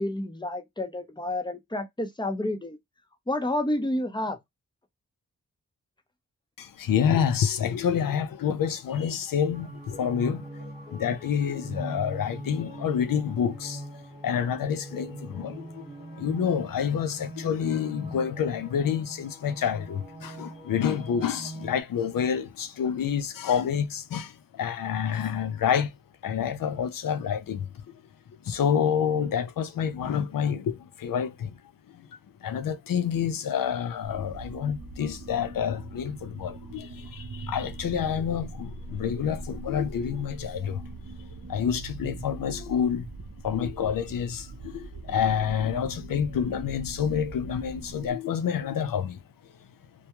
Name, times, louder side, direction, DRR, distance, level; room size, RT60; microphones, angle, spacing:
voice 1, 0.0-2.8 3.3-4.4, left 1 dB, 15° left, 0.6 m, -29 dB
voice 2, 6.6-13.8 14.2-15.9 16.2-25.9 26.2-27.7 28.5-31.6 31.9-32.1 32.4-40.8 41.5-43.1 43.4-49.2, left 8 dB, 75° left, 0.5 m, -28 dB
sound 1, 9.5-21.8, right 1 dB, 20° right, 1.1 m, -41 dB
sound 2, 34.0-48.1, right 2 dB, 40° right, 0.7 m, -41 dB
2.3 x 2.2 x 2.8 m
cardioid pair, 55°, 34 cm